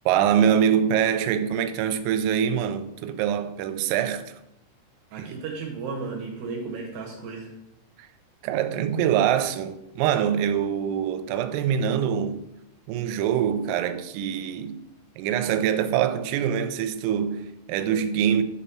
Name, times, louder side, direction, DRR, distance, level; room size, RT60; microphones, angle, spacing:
voice 1, 0.1-4.3 5.2-5.4 8.0-8.1 8.4-12.4 12.9-14.8 15.2-18.4, right 9 dB, 85° right, 3.2 m, -24 dB
voice 2, 5.1-7.5, right 4 dB, 70° right, 2.8 m, -34 dB
8.3 x 4.2 x 5.5 m
omnidirectional pair, 5.9 m